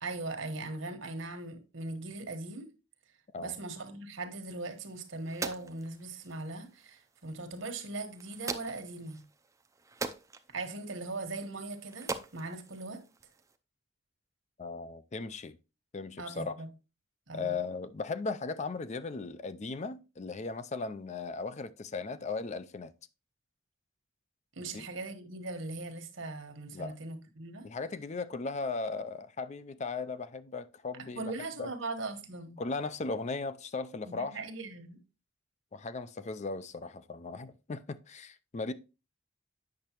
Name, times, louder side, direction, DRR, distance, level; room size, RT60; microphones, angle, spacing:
voice 1, 0.0-2.7 3.4-9.2 10.5-13.0 16.2-16.7 17.3-17.5 24.5-27.7 31.1-32.6 34.0-35.0, right 2 dB, 75° right, 1.3 m, -40 dB
sound 1, 4.6-13.6, right 3 dB, 15° right, 0.5 m, -44 dB
voice 2, 14.6-15.6 15.9-16.5 17.3-22.9 24.6-24.8 26.7-26.9 27.6-31.3 31.6-31.7 32.6-34.4 35.7-38.7, left 4 dB, 35° left, 0.4 m, -37 dB
8.6 x 6.5 x 3.0 m
head